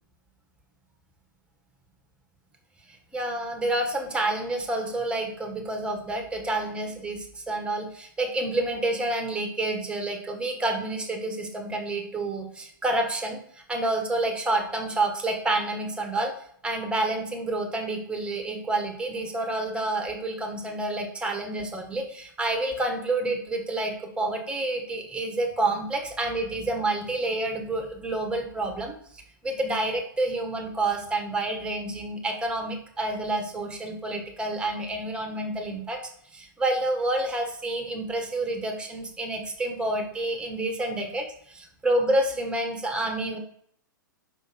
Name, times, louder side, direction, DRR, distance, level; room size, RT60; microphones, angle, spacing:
voice 1, 2.9-16.3 16.6-28.9 29.4-36.0 36.3-43.4, right 2 dB, 10° right, 3 dB, 1.6 m, -29 dB
5.7 x 5.2 x 6.1 m, 0.62 s
hypercardioid pair, 120°, 11 cm